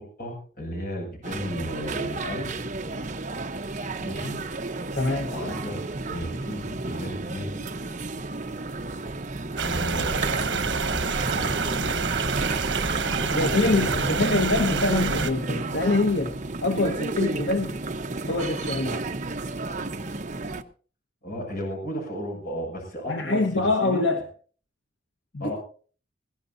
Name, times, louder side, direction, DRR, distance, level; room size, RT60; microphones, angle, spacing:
voice 1, 0.0-2.5 4.0-4.4 5.2-5.8 6.1-7.7 9.6-12.2 13.1-14.2 21.2-24.0 25.4-25.6, equal, 50° left, 0 dB, 7.2 m, -34 dB
sound 1, 1.2-20.6, right 3 dB, 40° right, 0.9 m, -32 dB
voice 2, 4.9-5.3 13.3-16.3 16.6-17.8 18.3-19.0 23.1-24.2 25.3-25.5, left 2 dB, 80° left, 5 dB, 1.5 m, -25 dB
sound 2, 9.6-15.3, right 4 dB, 75° right, 1.2 m, -27 dB
21.5 x 17.0 x 2.7 m, 0.41 s
head